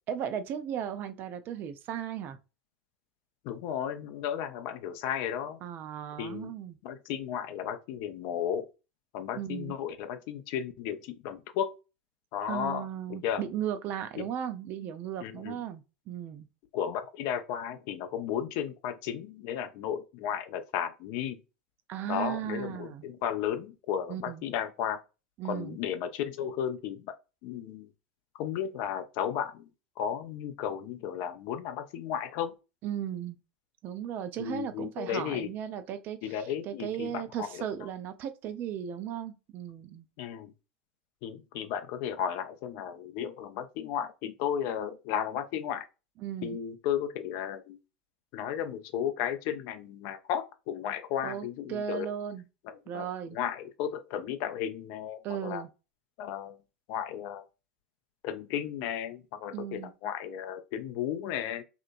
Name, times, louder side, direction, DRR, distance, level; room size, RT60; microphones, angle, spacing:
voice 1, 0.1-2.4 5.6-6.8 9.3-9.7 12.5-16.5 21.9-23.0 24.1-24.4 25.4-25.8 32.8-33.4 33.8-40.1 46.2-46.6 51.2-52.5 52.9-53.4 55.2-55.7 59.5-59.9, right 9 dB, 40° right, 0.4 m, -36 dB
voice 2, 3.4-5.6 6.2-6.5 6.8-8.7 9.1-11.7 12.3-13.5 14.1-14.3 15.2-15.6 16.7-21.4 22.1-25.0 25.4-27.1 27.4-27.9 28.3-29.7 30.0-32.5 34.4-35.6 36.2-37.9 40.2-40.5 41.2-45.9 46.4-47.8 48.3-52.1 52.7-55.6 56.2-56.6 56.9-57.4 58.2-61.6, left 9 dB, 50° left, 0.4 m, -34 dB
2.9 x 2.1 x 2.3 m
figure-of-eight pair, 80°, 5 cm